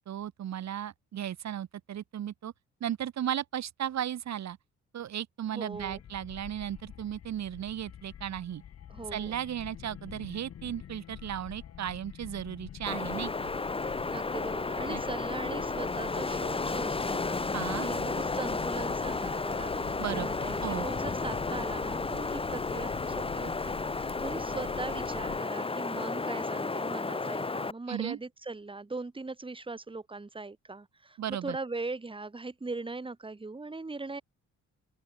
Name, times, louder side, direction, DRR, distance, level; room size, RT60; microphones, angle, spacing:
voice 1, 0.0-2.5 2.8-4.6 4.9-8.6 9.1-13.5 14.9-15.0 17.5-17.9 20.0-20.3 20.6-20.9 27.9-28.2 31.2-31.6, right 10 dB, 60° right, 2.1 m, -35 dB
voice 2, 5.5-6.0 8.9-9.4 14.1-17.5 17.8-34.2, right 3 dB, 15° right, 2.5 m, -40 dB
sound 1, 5.7-25.4, left 9 dB, 55° left, 1.5 m, -46 dB
Wind, 12.9-27.7, left 3 dB, 20° left, 1.3 m, -33 dB
open air
cardioid pair, 90°, 30 cm